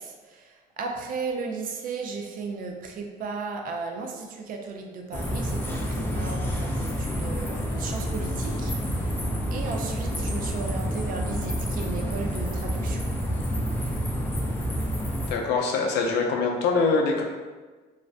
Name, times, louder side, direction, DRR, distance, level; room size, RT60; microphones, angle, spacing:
voice 1, 0.0-13.1, right 4 dB, 55° right, 3 dB, 0.4 m, -35 dB
sound 1, 5.1-15.3, equal, 15° left, 0.3 m, -28 dB
voice 2, 15.3-17.2, left 4 dB, 80° left, 2 dB, 0.4 m, -24 dB
2.4 x 2.1 x 2.4 m, 1.3 s
cardioid pair, 110°, 17 cm